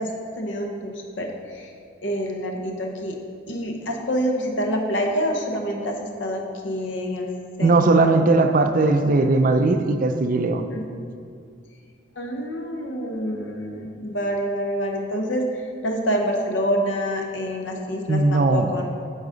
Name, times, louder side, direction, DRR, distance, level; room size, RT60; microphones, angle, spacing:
voice 1, 0.0-1.7 2.0-3.2 3.5-7.3 7.6-8.2 10.7-11.0 12.2-18.9, equal, 80° left, 2 dB, 0.9 m, -27 dB
voice 2, 7.6-10.7 18.1-18.7, right 3 dB, 45° right, 7 dB, 0.4 m, -18 dB
8.6 x 4.0 x 5.1 m, 2.3 s
head